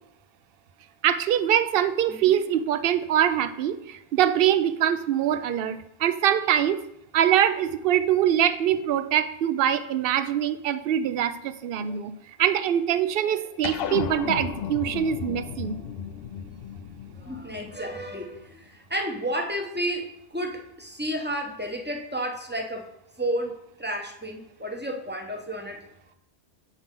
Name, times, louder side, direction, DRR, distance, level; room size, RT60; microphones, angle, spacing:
voice 1, 1.0-6.8 7.1-12.1 12.4-15.8, right 10 dB, 65° right, 12 dB, 0.7 m, -23 dB
sound 1, 13.6-18.4, left 8 dB, 65° left, 0.7 m, -34 dB
voice 2, 17.1-22.9 23.2-25.9, right 1 dB, 10° right, 2 dB, 0.7 m, -32 dB
7.7 x 6.2 x 3.7 m, 0.80 s
omnidirectional pair, 1.1 m